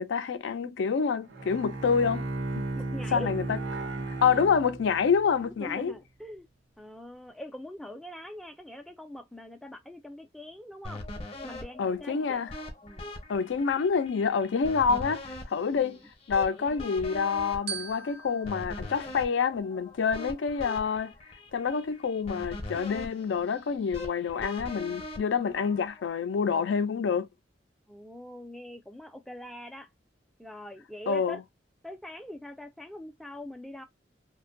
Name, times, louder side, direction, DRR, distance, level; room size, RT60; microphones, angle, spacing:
voice 1, 0.0-2.3 3.1-3.6 4.2-5.9 11.8-12.5 13.3-16.0 16.3-21.1 21.5-27.3 31.1-31.4, left 6 dB, 80° left, 0.4 m, -27 dB
Bowed string instrument, 1.2-5.3, right 2 dB, 85° right, 0.7 m, -35 dB
voice 2, 2.8-3.3 5.4-6.5 6.8-11.0 11.4-12.4 12.8-13.1 15.7-16.0 16.5-16.8 27.9-29.9 30.4-31.4 31.8-33.8, left 1 dB, ahead, 0.3 m, -43 dB
sound 1, 10.8-26.1, left 1 dB, 35° left, 0.7 m, -42 dB
Glockenspiel, 17.7-20.1, right 7 dB, 55° right, 0.5 m, -42 dB
2.5 x 2.2 x 2.5 m
head